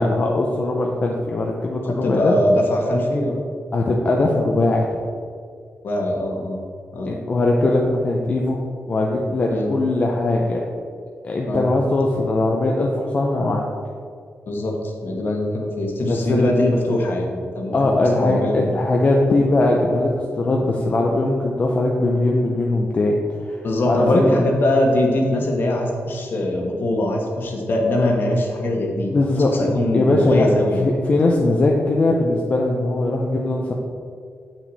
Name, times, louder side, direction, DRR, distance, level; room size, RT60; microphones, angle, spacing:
voice 1, 0.0-2.4 3.7-5.0 7.0-8.6 8.9-10.6 11.2-13.7 16.0-16.5 17.7-23.1 23.5-24.4 29.1-30.5 30.8-33.7, left 2 dB, 30° left, -1 dB, 0.6 m, -20 dB
voice 2, 1.8-3.4 5.8-6.6 6.9-7.1 9.5-9.7 11.5-11.6 14.5-18.7 23.6-29.1 29.4-30.8, left 1 dB, 50° left, 0 dB, 1.3 m, -22 dB
8.8 x 5.9 x 4.1 m, 2.2 s
wide cardioid pair, 175°, 4 cm